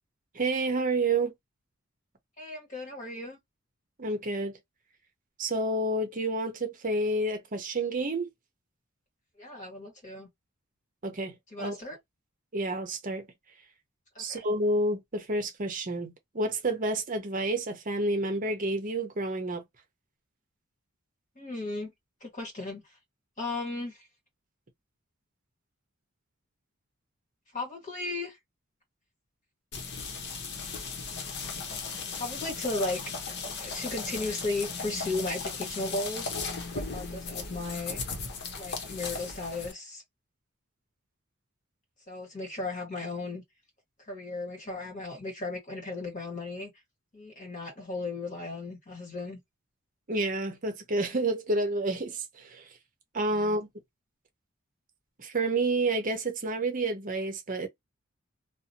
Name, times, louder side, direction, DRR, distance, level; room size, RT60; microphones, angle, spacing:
voice 1, 0.3-1.3 4.0-4.6 5.4-8.3 11.0-11.7 12.5-13.3 14.2-19.6 50.1-52.7 53.1-53.7 55.2-57.7, right 2 dB, 40° right, 0.7 m, -29 dB
voice 2, 2.4-3.4 9.4-10.3 11.5-12.0 14.1-14.4 21.3-21.9 22.2-22.8 23.4-24.1 27.5-28.4 32.2-33.0 33.3-36.3 36.7-38.0 38.5-40.0 42.1-43.4 44.1-46.7 47.1-49.4 53.3-53.5, left 2 dB, 40° left, 1.6 m, -35 dB
sound 1, 29.7-39.7, left 4 dB, 55° left, 0.7 m, -37 dB
2.7 x 2.0 x 2.8 m
head